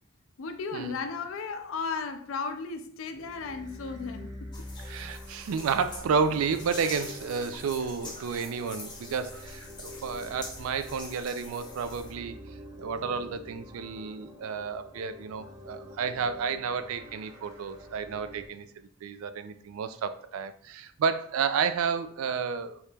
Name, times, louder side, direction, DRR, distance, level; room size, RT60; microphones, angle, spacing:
voice 1, 0.4-4.5, left 4 dB, 70° left, 0.4 m, -35 dB
sound 1, 3.0-18.5, left 1 dB, 15° right, 0.7 m, -46 dB
sound 2, 4.5-12.1, left 2 dB, 20° left, 0.7 m, -45 dB
voice 2, 4.8-12.4 12.8-18.7 19.0-22.8, right 6 dB, 85° right, 0.3 m, -31 dB
3.1 x 2.8 x 3.3 m
head